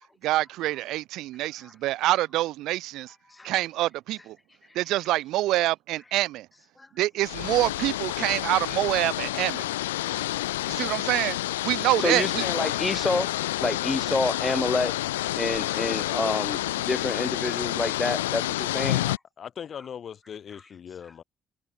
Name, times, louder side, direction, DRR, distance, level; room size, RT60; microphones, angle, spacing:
voice 1, 0.2-3.1 3.4-4.4 4.7-6.5 7.0-9.7 10.7-11.4 11.6-12.7, right 16 dB, 75° right, 0.8 m, -26 dB
sound 1, 7.2-19.2, left 16 dB, 90° left, 0.3 m, -29 dB
voice 2, 12.0-15.0 15.4-19.0, left 2 dB, 20° left, 4.3 m, -28 dB
voice 3, 19.0-21.2, left 8 dB, 55° left, 6.1 m, -40 dB
hypercardioid pair, 50°, 0 cm